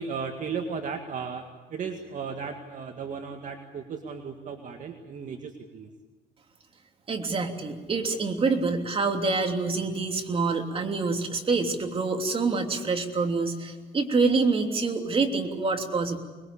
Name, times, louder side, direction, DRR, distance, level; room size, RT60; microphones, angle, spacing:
voice 1, 0.0-1.5 1.7-5.9, right 5 dB, 50° right, 4 dB, 2.0 m, -35 dB
voice 2, 7.1-16.2, right 4 dB, 35° right, 4 dB, 3.1 m, -26 dB
25.5 x 21.5 x 8.6 m, 1.3 s
cardioid pair, 110°, 17 cm